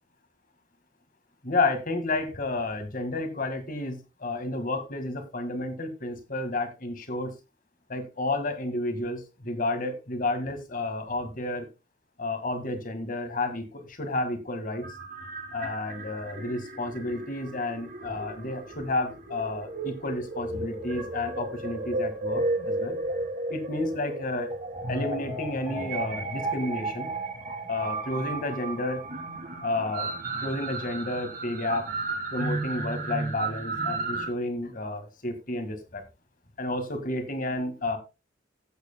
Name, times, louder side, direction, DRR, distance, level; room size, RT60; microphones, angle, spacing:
voice 1, 1.4-7.3 7.9-11.7 12.2-14.8 15.5-23.0 23.5-24.6 24.9-27.1 27.6-29.0 29.6-30.1 30.4-31.9 32.3-36.0 36.6-38.0, left 2 dB, 45° left, 8 dB, 1.8 m, -31 dB
sound 1, 14.7-34.3, right 2 dB, 50° right, 3.2 m, -34 dB
15.5 x 8.0 x 2.2 m, 0.26 s
head